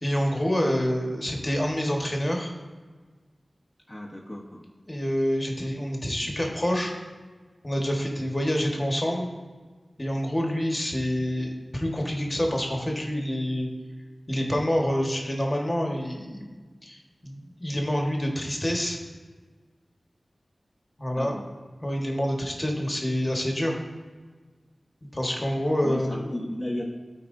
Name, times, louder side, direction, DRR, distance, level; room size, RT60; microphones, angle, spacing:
voice 1, 0.0-2.5 4.9-6.9 7.6-9.3 10.0-13.7 14.3-16.5 16.8-19.0 21.0-21.3 21.8-23.7 25.1-26.2, equal, 25° left, 0 dB, 1.4 m, -27 dB
voice 2, 3.9-4.6 21.1-21.4 25.8-26.8, left 1 dB, 5° left, -5 dB, 1.0 m, -34 dB
13.0 x 4.5 x 2.7 m, 1.4 s
wide cardioid pair, 50°, 0 cm